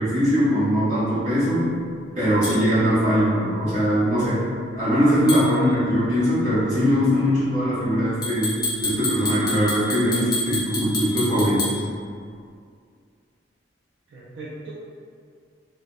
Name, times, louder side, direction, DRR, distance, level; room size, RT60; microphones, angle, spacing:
voice 1, 0.0-1.8 2.1-4.5 4.7-11.7, equal, 40° right, -13 dB, 1.2 m, -21 dB
sound 1, 2.4-2.6 5.3-5.5 8.2-11.8, left 1 dB, 20° left, 0.5 m, -28 dB
voice 2, 5.4-5.9 14.1-14.7, right 2 dB, 80° right, -7 dB, 0.4 m, -39 dB
2.6 x 2.0 x 2.4 m, 2.2 s
head